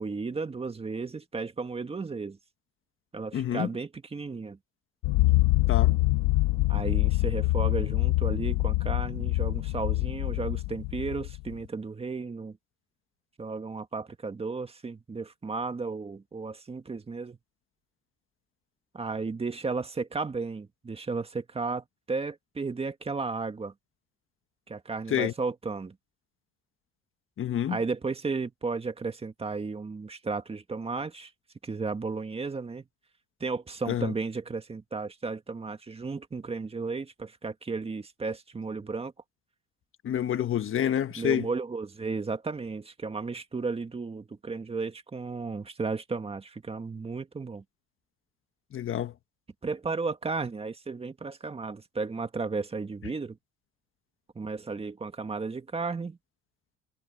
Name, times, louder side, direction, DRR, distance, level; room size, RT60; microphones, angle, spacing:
voice 1, 0.0-2.4 3.1-4.6 6.7-12.6 13.4-17.4 18.9-23.7 24.7-25.9 27.7-31.3 31.6-32.8 33.4-39.1 41.2-47.6 49.6-53.4 54.4-56.2, right 4 dB, 20° right, 2.0 m, -34 dB
voice 2, 3.3-3.7 5.7-6.0 25.1-25.3 27.4-27.8 33.9-34.1 40.0-41.5 48.7-49.1, left 10 dB, 45° left, 1.6 m, -28 dB
sound 1, 5.0-11.5, left 19 dB, 85° left, 1.6 m, -25 dB
cardioid pair, 110°, 29 cm